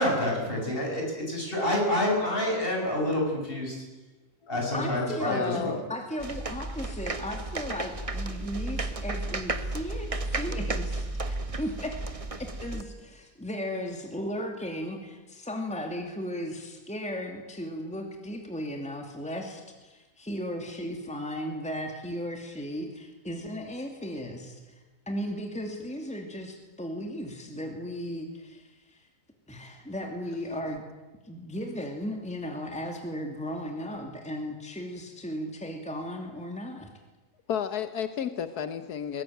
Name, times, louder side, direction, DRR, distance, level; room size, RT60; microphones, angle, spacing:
voice 1, 0.0-3.8 4.5-5.7, left 1 dB, 35° left, -1 dB, 7.9 m, -28 dB
voice 2, 4.7-12.0 12.4-24.8 25.1-29.1 29.5-30.8 31.2-36.9, equal, 5° left, 3 dB, 2.6 m, -36 dB
voice 3, 5.3-5.8 37.5-39.2, left 8 dB, 85° left, 10 dB, 1.6 m, -32 dB
sound 1, 6.2-12.8, right 2 dB, 25° right, 1.2 m, -33 dB
22.5 x 19.5 x 9.2 m, 1.2 s
omnidirectional pair, 1.6 m